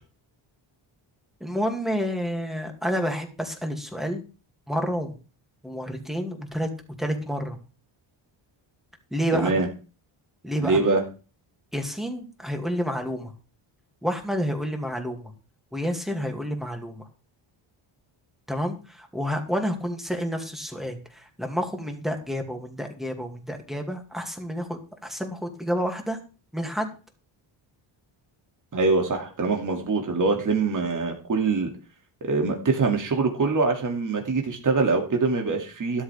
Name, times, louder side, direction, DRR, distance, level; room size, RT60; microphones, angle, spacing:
voice 1, 1.4-4.2 4.7-5.2 5.6-6.7 7.0-7.6 9.1-9.5 10.4-11.0 11.7-13.3 14.0-15.3 15.7-17.0 18.5-26.2 26.5-26.9, equal, ahead, 3 dB, 2.4 m, -29 dB
voice 2, 9.3-9.7 10.6-11.0 28.7-31.7 32.2-36.0, right 4 dB, 40° right, 2 dB, 2.5 m, -24 dB
12.5 x 11.5 x 3.5 m, 0.35 s
cardioid pair, 110°, 50 cm